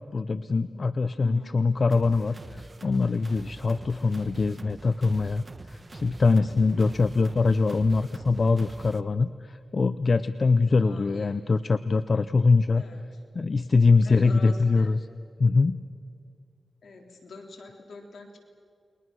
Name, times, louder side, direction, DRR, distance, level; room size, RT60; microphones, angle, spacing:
voice 1, 0.1-12.8 13.3-15.0 15.4-15.8, left 4 dB, 55° left, 14 dB, 0.6 m, -23 dB
sound 1, 1.9-9.0, right 3 dB, 35° right, 1.0 m, -45 dB
voice 2, 10.8-11.4 12.8-13.2 14.0-14.9 16.8-18.4, left 3 dB, 75° left, 2 dB, 3.5 m, -45 dB
29.5 x 21.5 x 6.2 m, 2.4 s
cardioid pair, 60°, 0 cm